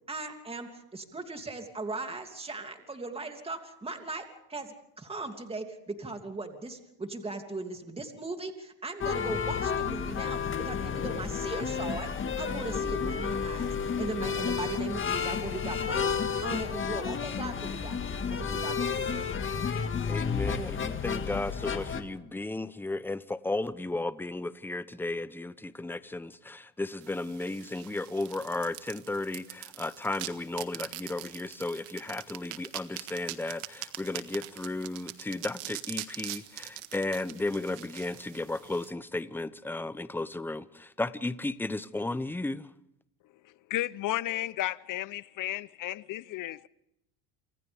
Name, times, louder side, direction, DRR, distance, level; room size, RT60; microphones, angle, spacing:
voice 1, 0.1-12.1 12.4-16.1 16.4-18.0 18.3-19.2, right 3 dB, 10° right, 2.9 m, -38 dB
sound 1, 9.0-22.0, left 6 dB, 25° left, 1.9 m, -31 dB
voice 2, 20.0-42.7, left 2 dB, 5° left, 0.8 m, -34 dB
sound 2, 27.0-38.9, right 17 dB, 85° right, 1.8 m, -43 dB
voice 3, 43.7-46.7, left 14 dB, 45° left, 0.8 m, -33 dB
28.5 x 26.5 x 3.6 m
supercardioid pair, 115°, 45 cm